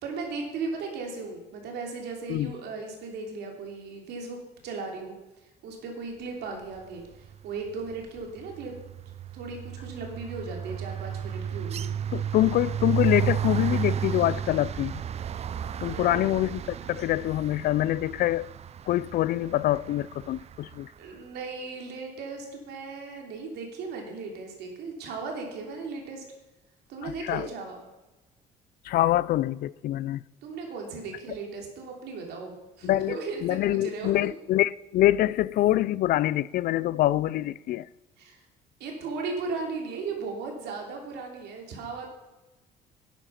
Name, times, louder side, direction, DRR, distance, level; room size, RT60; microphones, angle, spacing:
voice 1, 0.0-5.1 5.6-8.8 9.3-12.1 15.8-16.3 21.0-26.2 26.9-27.8 30.4-34.3 38.2-38.4 38.8-42.1, right 4 dB, 75° right, 3.2 m, -36 dB
sound 1, 7.1-7.4 7.7-20.8, right 9 dB, 40° right, 0.5 m, -33 dB
voice 2, 12.1-15.0 15.8-18.5 18.9-20.9 27.0-27.4 28.8-30.2 32.8-37.9, left 14 dB, 60° left, 0.4 m, -25 dB
12.0 x 9.0 x 5.7 m
cardioid pair, 110°, 17 cm